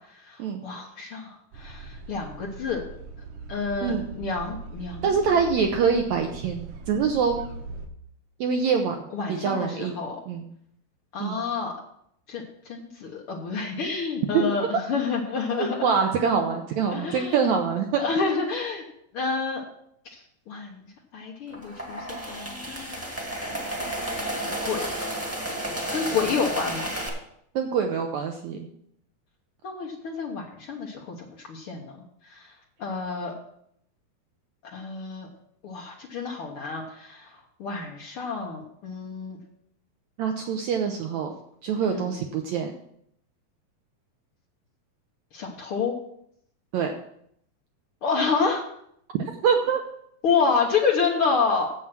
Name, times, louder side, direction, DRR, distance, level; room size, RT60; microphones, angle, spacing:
voice 1, 0.1-2.8 3.5-5.1 9.1-10.2 11.1-11.7 12.3-15.9 16.9-17.5 18.0-18.8 19.1-19.6 20.1-20.9 21.1-23.1 23.4-24.9 25.9-26.9 29.6-32.0 32.2-32.5 32.8-33.3 34.6-35.3 35.6-39.4 41.8-42.1 45.3-46.0 48.0-48.6 50.2-51.7, left 5 dB, 85° left, -1 dB, 1.2 m, -29 dB
sound 1, 1.5-7.9, right 4 dB, 65° right, 2.2 m, -41 dB
voice 2, 5.0-7.4 8.4-9.0 9.3-10.0 10.3-10.5 11.2-11.4 14.3-14.8 15.6-18.0 27.5-28.6 40.2-41.3 41.6-42.7 46.7-46.9 49.2-49.8, right 6 dB, 85° right, 4 dB, 1.6 m, -25 dB
sound 2, 21.5-27.1, right 1 dB, 10° right, 0.9 m, -32 dB
9.0 x 7.7 x 6.0 m, 0.72 s
omnidirectional pair, 4.2 m